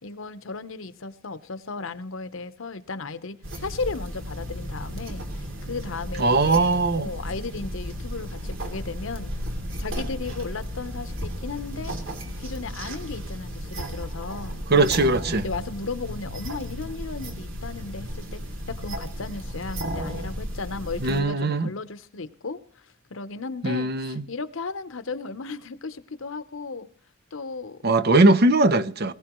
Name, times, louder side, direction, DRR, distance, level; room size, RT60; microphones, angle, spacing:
voice 1, 0.0-9.5 9.8-11.9 12.2-15.1 15.4-18.4 18.7-26.9 27.3-27.8, left 4 dB, 75° left, 0.9 m, -35 dB
sound 1, 3.4-21.2, equal, 70° right, 2.8 m, -34 dB
voice 2, 6.2-7.1 14.7-15.4 21.0-21.7 23.6-24.2 27.8-29.1, right 2 dB, 50° right, 0.7 m, -20 dB
21.5 x 16.0 x 3.1 m
head